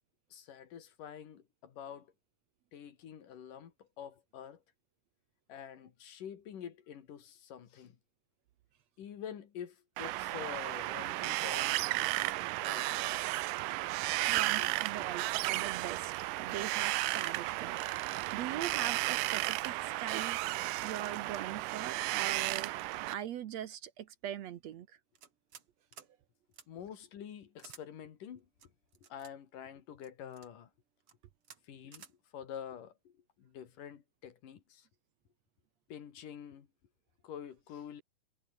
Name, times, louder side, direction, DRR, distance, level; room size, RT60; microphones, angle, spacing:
voice 1, 0.3-2.1 2.7-4.6 5.5-8.0 9.0-11.8 12.6-13.2 14.3-14.8 26.7-28.5 29.0-30.7 31.6-34.9 35.9-36.7 37.2-38.0, left 9 dB, 80° left, 3.9 m, -47 dB
Wind, 10.0-23.1, right 19 dB, 85° right, 2.3 m, -34 dB
voice 2, 14.3-17.8 18.3-20.4 20.8-22.7 23.1-25.0, right 10 dB, 65° right, 2.0 m, -41 dB
sound 1, 25.2-25.7 25.9-26.1 26.5-26.7 27.6-27.8 28.6-29.3 30.0-30.5 31.0-31.2 31.4-31.6 31.9-32.1, right 7 dB, 45° right, 2.9 m, -54 dB
omnidirectional pair, 3.7 m